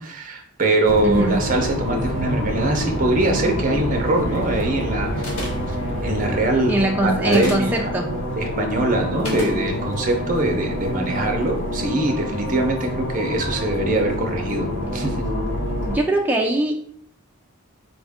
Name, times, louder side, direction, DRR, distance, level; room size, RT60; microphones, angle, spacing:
voice 1, 0.0-5.5 6.0-6.8 7.0-7.9 8.4-15.2, right 2 dB, 40° right, 3 dB, 0.7 m, -23 dB
sound 1, 0.8-16.0, equal, 60° left, 0.7 m, -27 dB
voice 2, 1.0-1.4 6.7-8.1 15.9-16.7, right 1 dB, 10° right, 0 dB, 0.3 m, -21 dB
sound 2, 5.2-5.7 7.2-7.7 9.2-9.6, left 1 dB, 90° left, 1.1 m, -30 dB
4.1 x 2.5 x 3.5 m, 0.67 s
head